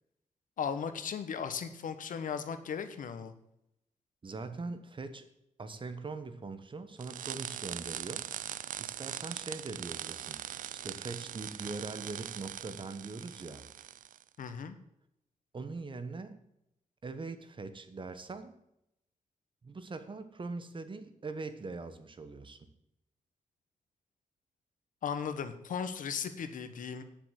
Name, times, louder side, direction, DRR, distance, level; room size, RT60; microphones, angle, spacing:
voice 1, 0.6-3.3 14.4-14.8 25.0-27.0, left 7 dB, 80° left, 9 dB, 1.3 m, -36 dB
voice 2, 4.2-5.3 5.6-8.3 8.8-10.4 10.7-13.7 15.5-16.4 17.0-18.6 19.6-22.7, right 3 dB, 40° right, 10 dB, 1.4 m, -42 dB
sound 1, 7.0-14.2, right 10 dB, 80° right, 0.5 m, -41 dB
10.5 x 7.0 x 7.7 m, 0.80 s
cardioid pair, 95°, 14 cm